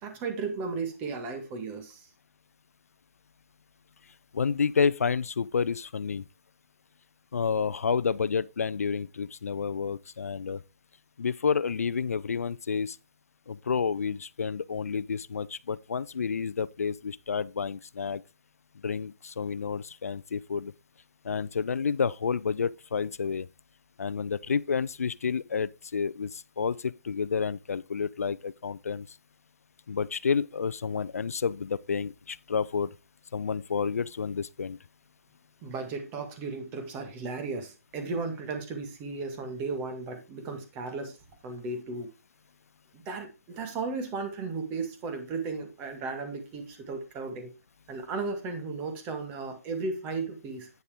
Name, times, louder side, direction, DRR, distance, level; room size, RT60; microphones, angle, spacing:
voice 1, 0.0-2.1 35.6-41.2 41.4-42.1 42.9-47.5 47.9-50.7, right 4 dB, 20° right, 1.9 m, -35 dB
voice 2, 4.3-6.3 7.3-10.6 11.2-13.0 13.5-18.2 18.8-20.7 21.2-23.5 24.0-29.2 29.9-33.0 33.3-34.8, left 6 dB, 75° left, 0.5 m, -30 dB
9.3 x 6.6 x 3.6 m
hypercardioid pair, 150°, 8 cm